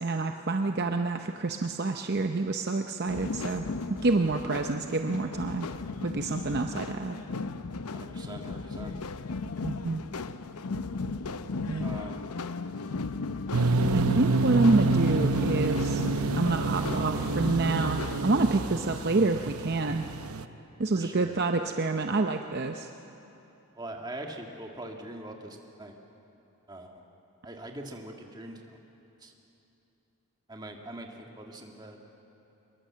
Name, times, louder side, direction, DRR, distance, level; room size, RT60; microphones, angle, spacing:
voice 1, 0.0-3.6 4.0-5.7 6.0-7.2 9.6-10.0 11.7-11.9 13.9-16.0 16.3-20.1 20.8-22.9, right 3 dB, 45° right, 5 dB, 0.7 m, -27 dB
sound 1, 3.1-18.3, left 3 dB, 90° left, 0.7 m, -36 dB
voice 2, 7.9-9.0 11.8-12.2 20.9-21.3 23.8-25.9 26.7-27.0 27.4-28.8 29.2-29.3 30.5-32.0, right 1 dB, 20° right, 2 dB, 2.0 m, -42 dB
sound 2, 13.5-20.4, right 3 dB, 75° right, 0.8 m, -28 dB
24.5 x 22.0 x 7.5 m, 3.0 s
head